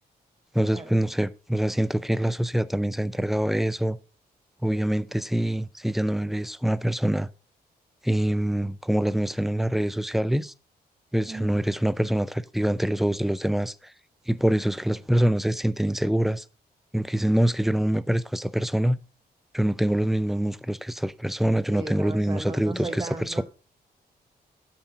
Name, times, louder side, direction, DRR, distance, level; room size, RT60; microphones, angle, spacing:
voice 1, 0.5-4.0 4.6-7.3 8.0-10.5 11.1-13.9 14.3-16.4 16.9-19.0 19.5-23.4, right 1 dB, ahead, 0.4 m, -25 dB
voice 2, 11.3-11.6 21.7-23.4, right 3 dB, 25° right, 0.9 m, -36 dB
8.4 x 6.0 x 3.8 m
cardioid pair, 95°, 17 cm